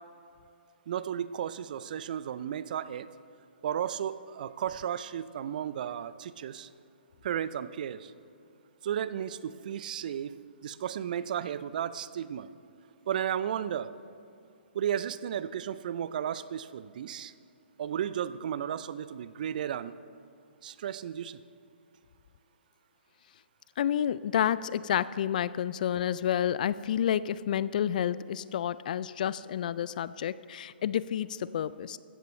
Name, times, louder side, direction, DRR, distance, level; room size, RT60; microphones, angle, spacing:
voice 1, 0.9-3.1 3.6-6.7 7.2-8.1 8.8-12.5 13.1-13.9 14.7-17.3 17.8-20.0 20.6-21.4, right 9 dB, 50° right, 15 dB, 0.5 m, -34 dB
voice 2, 23.8-32.0, left 10 dB, 50° left, 18 dB, 0.4 m, -30 dB
16.0 x 13.5 x 3.2 m, 2.6 s
figure-of-eight pair, 130°, 6 cm